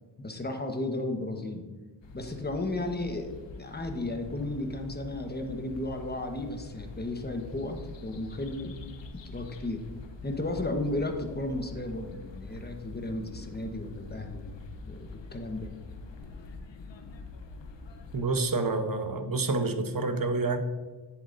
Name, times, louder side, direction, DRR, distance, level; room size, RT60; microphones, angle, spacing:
voice 1, 0.2-1.6 2.1-8.7 9.1-9.8 10.2-14.4 14.8-15.7, left 2 dB, 20° left, 4 dB, 1.2 m, -34 dB
sound 1, 2.0-18.3, left 3 dB, 75° left, 1.0 m, -45 dB
voice 2, 18.1-20.6, right 3 dB, 50° right, 8 dB, 1.0 m, -28 dB
10.5 x 7.9 x 2.7 m, 1.3 s
cardioid pair, 50°, 44 cm